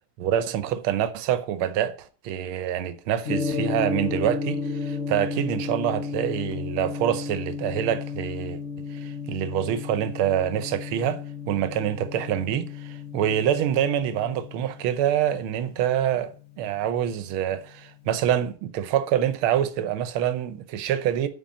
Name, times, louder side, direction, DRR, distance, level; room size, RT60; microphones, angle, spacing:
voice 1, 0.2-8.6 8.9-21.3, right 10 dB, 85° right, 1.6 m, -26 dB
Gong, 3.3-17.4, left 4 dB, 45° left, 1.1 m, -33 dB
9.2 x 4.5 x 7.2 m
omnidirectional pair, 2.3 m